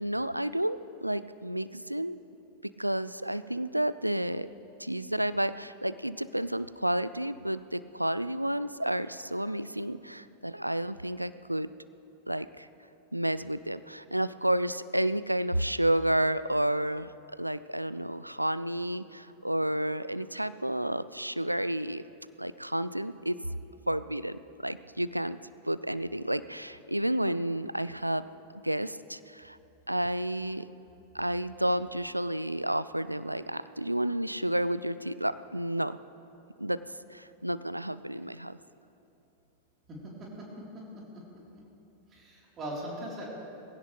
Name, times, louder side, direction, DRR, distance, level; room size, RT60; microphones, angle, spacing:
voice 1, 0.0-2.2 2.8-4.5 4.8-11.7 12.3-12.7 13.1-17.1 17.4-22.0 22.4-23.4 23.9-25.4 25.6-28.2 28.6-29.6 29.9-30.7 31.1-36.0 36.6-36.8 37.1-38.6, right 1 dB, 90° right, 15 dB, 0.3 m, -31 dB
voice 2, 39.9-40.5 40.7-41.2 42.1-43.2, right 1 dB, 25° right, -4 dB, 4.1 m, -40 dB
19.5 x 16.5 x 3.4 m, 2.9 s
figure-of-eight pair, 90°, 0 cm